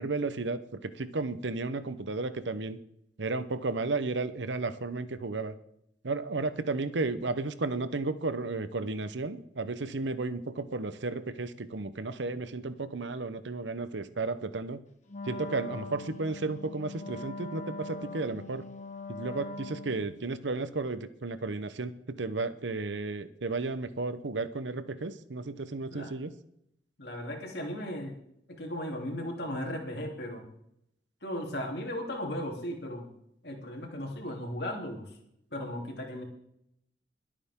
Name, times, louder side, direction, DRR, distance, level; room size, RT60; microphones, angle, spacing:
voice 1, 0.0-2.8 3.2-5.5 6.0-14.8 15.2-18.6 19.1-26.3, right 3 dB, 85° right, 13 dB, 0.9 m, -33 dB
Wind instrument woodwind instrument, 15.1-20.2, left 3 dB, 40° left, 1.5 m, -42 dB
voice 2, 27.0-28.1 28.6-30.4 31.2-33.1 33.4-35.1 35.5-36.2, left 1 dB, 60° left, 1 dB, 3.3 m, -36 dB
22.5 x 8.7 x 3.7 m, 0.75 s
head